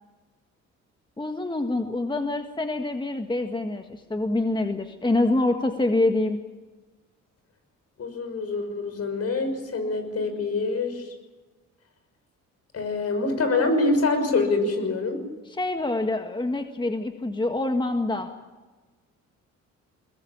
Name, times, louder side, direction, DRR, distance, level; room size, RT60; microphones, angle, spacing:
voice 1, 1.2-6.4 15.5-18.3, left 2 dB, 15° left, 6 dB, 1.7 m, -26 dB
voice 2, 8.0-11.1 12.7-15.2, left 3 dB, 55° left, 7 dB, 6.0 m, -25 dB
22.0 x 20.5 x 8.7 m, 1.3 s
cardioid pair, 90°, 30 cm